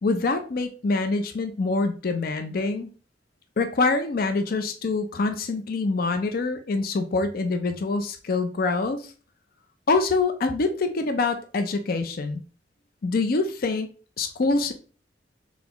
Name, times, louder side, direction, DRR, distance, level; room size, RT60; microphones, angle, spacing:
voice 1, 0.0-2.9 3.6-9.1 9.9-12.4 13.0-13.9 14.2-14.7, left 3 dB, 55° left, 8 dB, 0.5 m, -25 dB
4.0 x 3.4 x 2.9 m, 0.38 s
head